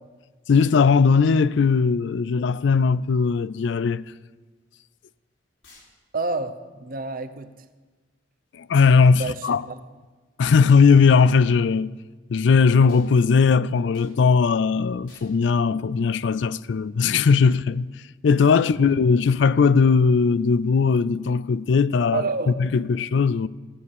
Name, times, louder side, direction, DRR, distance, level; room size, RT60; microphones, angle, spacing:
voice 1, 0.5-4.0 8.6-9.6 10.4-11.9 12.3-17.9 18.2-22.3 22.6-23.5, left 5 dB, 65° left, 0.4 m, -19 dB
sound 1, 5.6-5.9 8.8-9.0 10.7-10.9 12.9-13.1 13.9-14.1 15.1-15.3, left 3 dB, 85° left, 4.1 m, -52 dB
voice 2, 6.1-7.6 9.1-9.8 18.6-19.0 22.1-22.5, right 3 dB, 50° right, 0.8 m, -29 dB
15.0 x 6.6 x 8.7 m
head